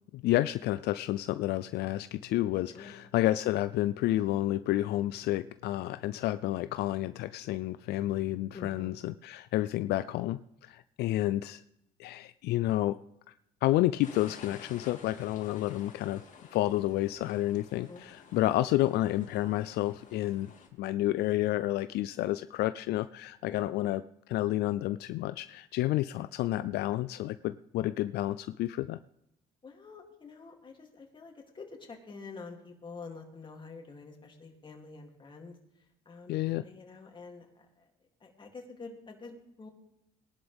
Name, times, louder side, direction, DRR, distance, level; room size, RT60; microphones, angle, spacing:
voice 1, 0.1-11.6 12.0-13.0 13.6-16.2 16.5-20.5 20.8-24.0 24.3-29.0 36.3-36.6, left 15 dB, 75° left, 12 dB, 0.4 m, -30 dB
voice 2, 8.5-8.9 17.9-18.1 23.5-23.6 26.2-26.3 29.6-35.6 36.0-37.9 38.2-39.7, left 4 dB, 30° left, 1 dB, 2.8 m, -47 dB
sound 1, 14.0-20.7, left 5 dB, 50° left, 2.5 m, -52 dB
19.5 x 11.0 x 3.5 m, 0.83 s
cardioid pair, 110°, 17 cm